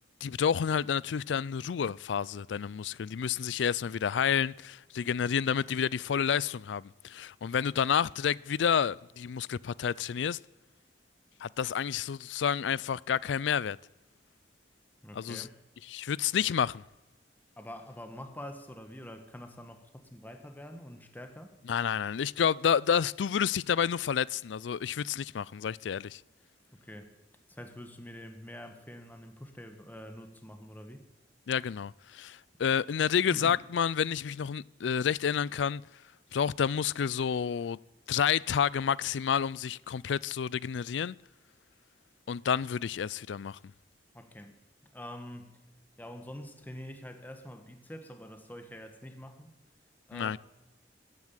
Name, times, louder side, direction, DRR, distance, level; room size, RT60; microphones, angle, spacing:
voice 1, 0.2-10.4 11.4-13.8 15.1-15.5 15.9-16.8 21.7-26.2 31.5-35.8 36.3-37.8 38.1-41.2 42.3-43.6 50.1-50.4, left 7 dB, 80° left, 0.4 m, -29 dB
voice 2, 15.0-15.6 17.6-21.5 26.7-27.1 27.5-31.0 33.3-33.6 44.1-44.5 44.9-45.6 46.0-49.5 50.1-50.4, equal, 10° left, 1.3 m, -45 dB
14.0 x 9.5 x 9.1 m
head